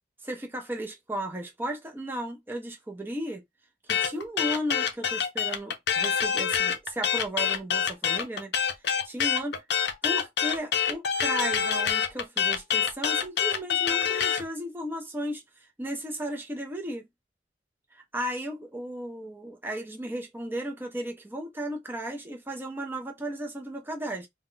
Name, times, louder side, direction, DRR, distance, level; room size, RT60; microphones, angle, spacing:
voice 1, 0.2-3.4 3.9-8.5 9.0-9.5 10.0-17.1 17.9-24.3, right 1 dB, 10° right, 0.6 m, -35 dB
sound 1, 3.9-14.4, left 8 dB, 65° left, 0.5 m, -26 dB
2.3 x 2.1 x 3.7 m
head